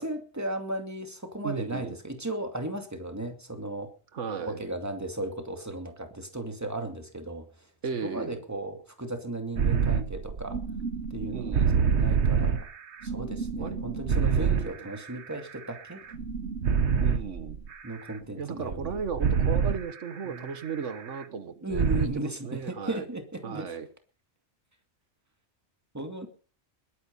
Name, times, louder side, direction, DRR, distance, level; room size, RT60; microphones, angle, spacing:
voice 1, 0.0-3.9 4.4-7.5 8.0-10.6 11.1-12.7 13.0-16.0 17.8-19.0 20.3-20.5 21.6-23.7 25.9-26.3, right 1 dB, 15° right, 5 dB, 2.4 m, -36 dB
voice 2, 1.4-2.0 4.1-4.6 7.8-8.4 11.3-11.9 13.6-13.8 14.2-14.9 17.0-17.6 18.4-23.1 23.4-23.9, right 6 dB, 85° right, 11 dB, 1.6 m, -35 dB
sound 1, 9.6-15.8 16.1-18.2 18.7-21.2 21.7-22.1, right 6 dB, 70° right, 1.4 m, -27 dB
20.5 x 9.3 x 5.4 m, 0.39 s
omnidirectional pair, 1.2 m